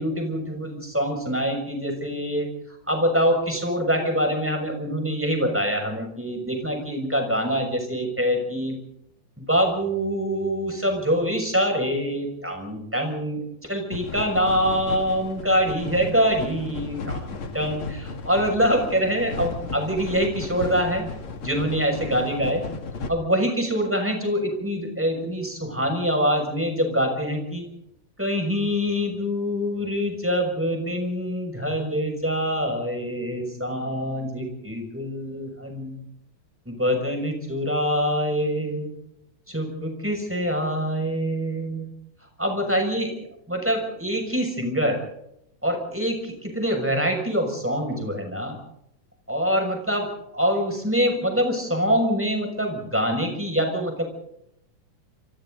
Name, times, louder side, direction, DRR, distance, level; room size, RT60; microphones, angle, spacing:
voice 1, 0.0-8.8 9.4-21.0 21.4-22.6 23.1-27.7 28.2-36.0 36.6-38.9 39.5-41.9 42.4-45.0 45.6-48.6 49.3-50.1 50.3-54.0, equal, 5° right, 3 dB, 6.3 m, -25 dB
sound 1, 13.9-23.1, left 3 dB, 45° left, 2.7 m, -35 dB
29.0 x 24.5 x 4.0 m, 0.76 s
omnidirectional pair, 3.5 m